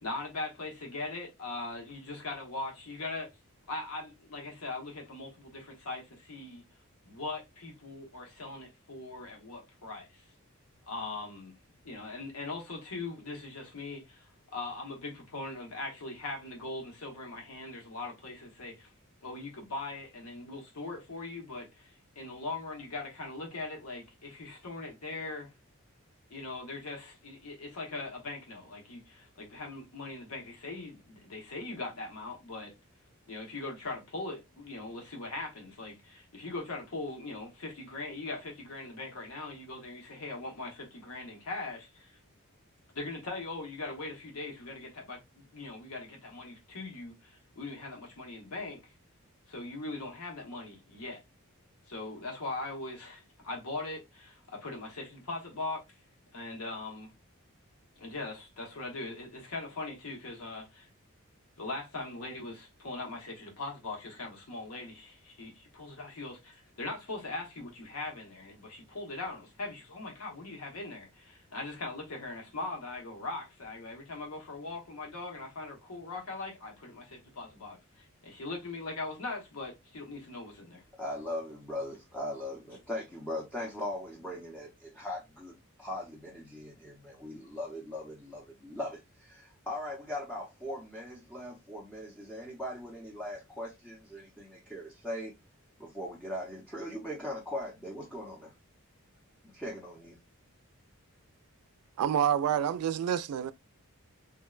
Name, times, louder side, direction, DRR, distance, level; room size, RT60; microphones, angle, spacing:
voice 1, 0.0-3.3 3.7-6.6 7.1-10.2 10.9-11.5 11.8-18.9 19.2-25.5 26.3-32.7 33.3-42.2 42.9-48.9 49.5-51.2 51.9-56.0 56.3-57.1 58.0-60.9 61.6-80.8, left 2 dB, 90° left, 1.0 m, -40 dB
voice 2, 81.0-95.3 95.8-98.5 99.5-100.2, left 1 dB, 5° left, 0.6 m, -39 dB
voice 3, 102.0-103.5, right 9 dB, 85° right, 0.3 m, -28 dB
3.6 x 2.1 x 2.3 m
head